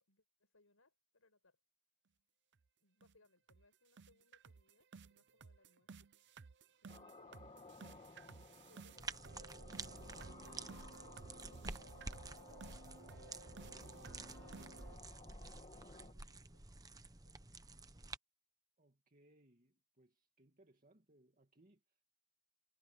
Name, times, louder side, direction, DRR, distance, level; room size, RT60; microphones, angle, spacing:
voice 1, 0.0-1.6 2.8-6.1 6.4-8.1 8.5-14.8 15.3-17.5, left 2 dB, 65° left, 6.2 m, -73 dB
sound 1, 2.5-2.6 3.0-3.2 3.5-3.6 4.0-15.0, right 4 dB, 50° right, 0.7 m, -56 dB
sound 2, 6.9-16.1, left 3 dB, 30° left, 1.8 m, -58 dB
sound 3, 9.0-18.2, right 3 dB, 15° right, 0.9 m, -51 dB
voice 2, 18.8-22.0, right 1 dB, 35° right, 2.3 m, -69 dB
head